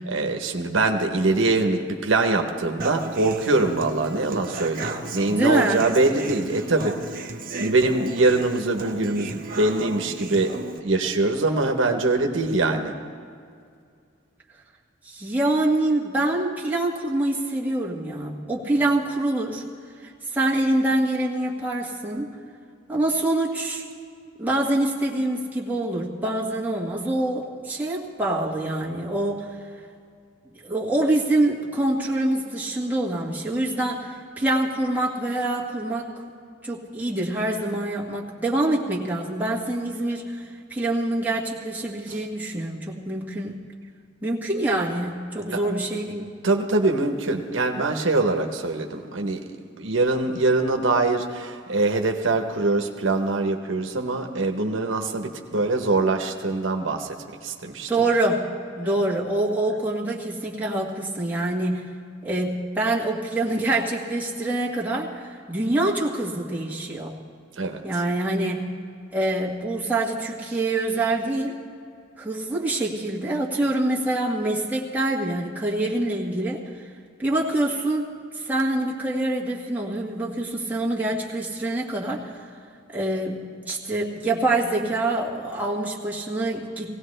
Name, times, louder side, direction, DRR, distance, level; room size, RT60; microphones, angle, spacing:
voice 1, 0.1-7.3 7.6-10.5 10.8-12.9 42.1-42.2 45.5-45.6 46.4-49.4 49.8-57.2 57.4-57.9 67.6-67.8, right 2 dB, 80° right, 4 dB, 1.0 m, -23 dB
Human voice / Acoustic guitar, 2.8-10.8, right 3 dB, 50° right, 1.0 m, -35 dB
voice 2, 5.3-5.9 15.0-19.6 20.0-22.3 22.9-23.8 24.4-29.5 30.6-36.1 36.6-40.4 40.7-43.5 44.2-46.3 57.9-58.4 58.8-61.8 62.2-67.1 67.8-68.7 69.1-71.6 72.2-76.6 77.2-82.3 82.9-83.4 83.6-87.0, right 2 dB, 10° right, -5 dB, 1.7 m, -25 dB
18.5 x 17.0 x 3.3 m, 2.3 s
head